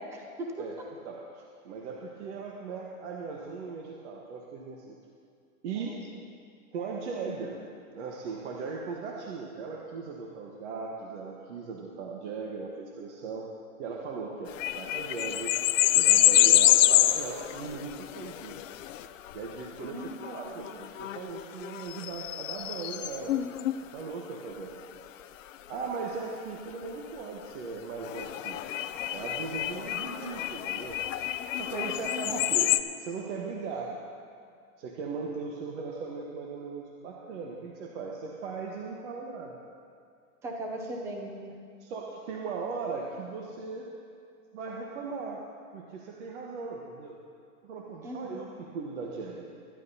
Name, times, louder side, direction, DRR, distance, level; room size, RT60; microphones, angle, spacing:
voice 1, 0.0-0.9 5.8-6.2 7.1-7.4 19.8-20.7 32.3-32.4 40.4-41.6 48.0-48.4, right 1 dB, 5° right, 2 dB, 0.5 m, -39 dB
voice 2, 1.0-5.0 5.6-6.0 6.7-7.6 7.9-13.5 13.8-15.6 15.9-18.6 19.3-23.4 23.9-25.0 25.7-28.6 29.1-31.0 31.6-33.9 34.8-39.5 40.9-41.0 41.8-43.9 44.5-45.4 45.7-47.2 47.6-49.5, right 4 dB, 50° right, -1 dB, 1.4 m, -38 dB
sound 1, 14.5-23.7 28.0-32.8, left 13 dB, 60° left, 0.6 m, -27 dB
22.5 x 11.0 x 2.8 m, 2.3 s
hypercardioid pair, 150°, 44 cm